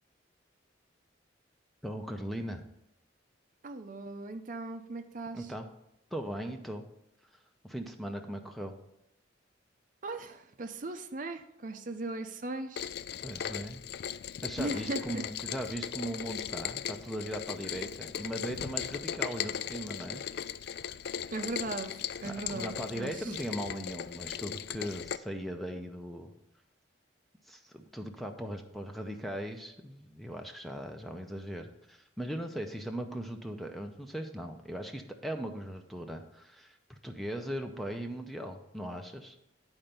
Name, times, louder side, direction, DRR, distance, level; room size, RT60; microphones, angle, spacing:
voice 1, 1.8-2.6 5.3-5.7 6.1-6.9 7.6-8.7 13.2-13.8 14.4-20.2 22.2-26.3 27.5-39.4, equal, ahead, 4 dB, 0.5 m, -39 dB
voice 2, 3.6-5.5 10.0-12.9 14.6-15.2 21.3-23.4, right 2 dB, 45° right, 8 dB, 0.6 m, -38 dB
Rain, 12.8-25.2, left 8 dB, 55° left, 0.3 m, -38 dB
10.5 x 4.4 x 5.2 m, 0.79 s
head